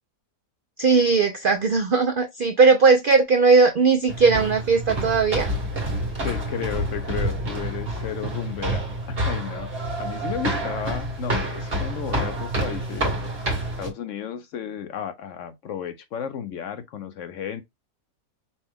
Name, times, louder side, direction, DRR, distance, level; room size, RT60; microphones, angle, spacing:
voice 1, 0.8-5.5, right 4 dB, 75° right, 0.4 m, -18 dB
sound 1, 4.1-13.9, right 1 dB, 40° right, 1.6 m, -28 dB
voice 2, 6.2-8.8 9.1-9.7 10.0-13.1 13.8-17.6, left 8 dB, 65° left, 0.8 m, -33 dB
5.3 x 2.2 x 3.4 m
omnidirectional pair, 1.6 m